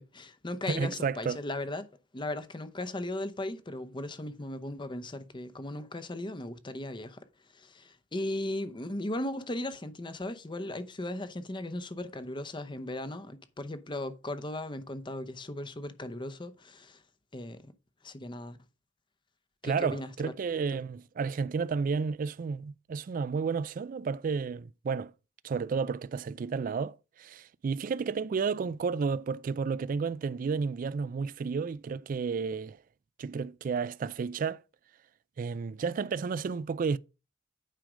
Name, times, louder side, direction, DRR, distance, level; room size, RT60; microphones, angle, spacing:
voice 1, 0.0-1.9 2.1-7.2 7.5-17.0 17.3-17.7 18.0-18.6 19.6-20.3, left 1 dB, 25° left, 0.7 m, -37 dB
voice 2, 0.7-1.4 19.6-25.1 25.4-32.8 33.2-34.6 35.4-37.0, right 5 dB, 45° right, 0.3 m, -32 dB
9.1 x 5.0 x 4.9 m
head